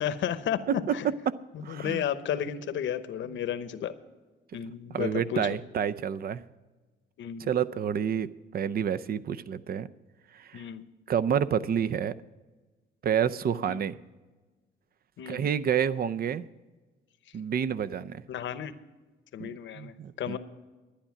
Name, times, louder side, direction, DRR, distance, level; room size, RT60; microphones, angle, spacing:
voice 1, 0.0-0.6 0.9-1.1 1.5-3.9 4.5-5.5 7.2-7.5 10.5-10.8 13.6-13.8 15.2-15.5 18.3-18.7 19.3-20.4, left 9 dB, 70° left, 12 dB, 0.9 m, -33 dB
voice 2, 0.7-2.0 4.9-6.4 7.4-9.9 10.3-10.6 11.1-12.1 13.0-13.9 15.3-16.5 17.3-18.2 19.4-20.4, right 8 dB, 50° right, 17 dB, 0.6 m, -29 dB
11.5 x 9.9 x 5.9 m, 1.2 s
cardioid pair, 90°, 20 cm